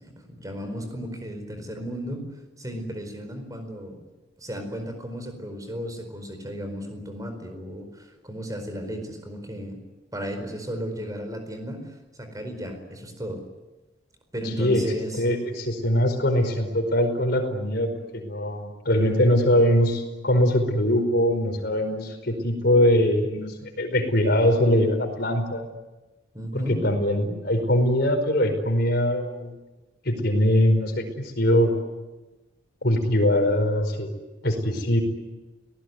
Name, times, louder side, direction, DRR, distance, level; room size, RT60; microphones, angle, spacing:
voice 1, 0.3-2.3 2.6-4.0 4.4-9.8 10.1-13.4 14.3-15.2 26.3-26.8, equal, 20° right, 6 dB, 4.6 m, -34 dB
voice 2, 15.1-25.6 26.5-29.5 30.0-31.7 32.8-34.1 34.4-35.0, left 1 dB, 55° left, 5 dB, 5.0 m, -22 dB
29.5 x 19.0 x 9.6 m, 1.1 s
head